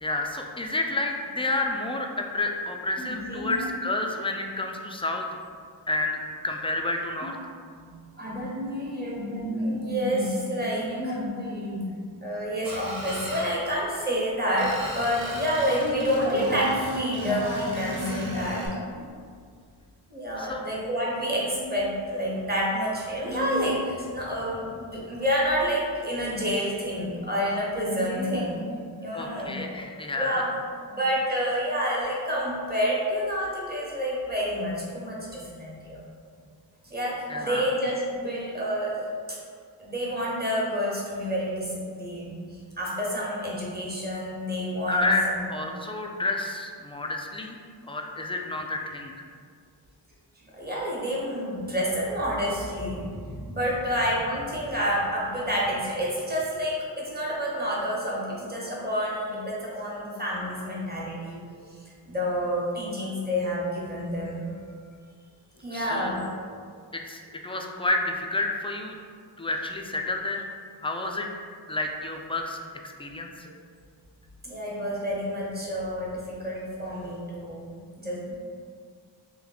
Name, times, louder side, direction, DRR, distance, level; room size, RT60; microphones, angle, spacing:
voice 1, 0.0-5.2 5.9-7.4 20.4-20.7 29.1-30.5 37.3-37.8 44.9-47.6 47.9-49.3 65.7-66.2 66.9-69.0 69.4-70.5 70.8-71.3 71.7-72.6 73.0-73.5, left 2 dB, 15° left, 2 dB, 0.3 m, -30 dB
voice 2, 3.0-3.6 7.7-7.9 8.1-11.9 12.2-19.1 20.1-29.6 30.1-30.5 30.9-36.0 36.8-39.4 39.8-42.4 42.8-45.4 50.5-61.4 62.1-64.5 65.6-66.3 74.4-78.3, equal, 20° right, -5 dB, 1.0 m, -29 dB
Screech, 12.6-13.5 14.6-18.7, right 1 dB, 50° right, 1.1 m, -38 dB
2.9 x 2.2 x 3.9 m, 2.1 s
cardioid pair, 40°, 43 cm